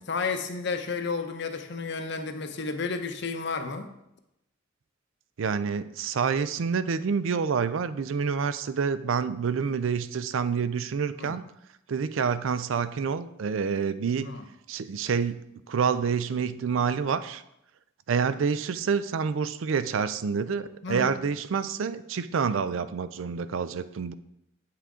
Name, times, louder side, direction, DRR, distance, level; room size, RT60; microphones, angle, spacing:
voice 1, 0.1-3.9 11.2-11.4 14.2-14.4 20.8-21.1, left 4 dB, 60° left, 7 dB, 0.7 m, -32 dB
voice 2, 5.4-11.4 11.9-14.3 14.7-17.4 18.1-24.1, right 6 dB, 75° right, 14 dB, 0.4 m, -28 dB
8.3 x 5.8 x 3.7 m, 0.85 s
head